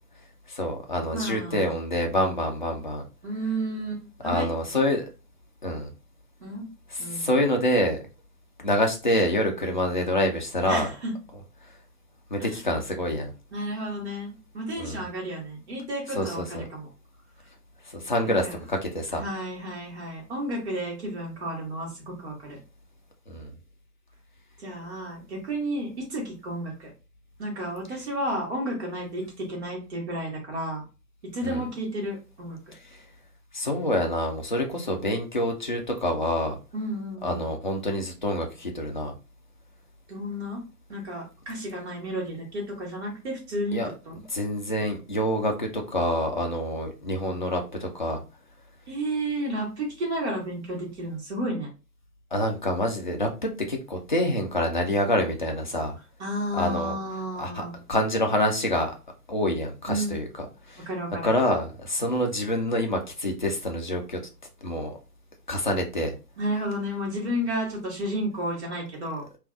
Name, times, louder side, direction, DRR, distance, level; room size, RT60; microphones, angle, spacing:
voice 1, 0.5-3.0 4.2-5.1 5.6-5.9 6.9-8.0 8.6-10.9 12.3-13.3 14.8-15.0 16.1-16.6 17.9-19.2 23.3-23.5 31.4-31.6 33.5-36.6 37.2-39.1 43.7-43.9 44.3-48.2 52.3-56.0 56.5-57.0 57.4-58.9 59.3-60.2 60.7-60.9 61.2-64.2 64.6-65.0 65.5-66.1, left 1 dB, 35° left, 0.4 m, -26 dB
voice 2, 1.1-1.8 3.2-4.5 6.4-6.7 7.0-7.3 10.6-11.1 12.4-12.8 13.5-16.9 18.2-18.6 19.1-22.6 24.6-26.9 27.4-30.8 31.3-32.6 36.7-37.5 40.1-40.6 40.9-44.2 48.9-51.7 56.2-57.8 59.9-60.2 60.9-61.3 66.4-69.2, right 1 dB, 45° right, 1.6 m, -32 dB
3.5 x 2.5 x 2.3 m
figure-of-eight pair, 130°, 48 cm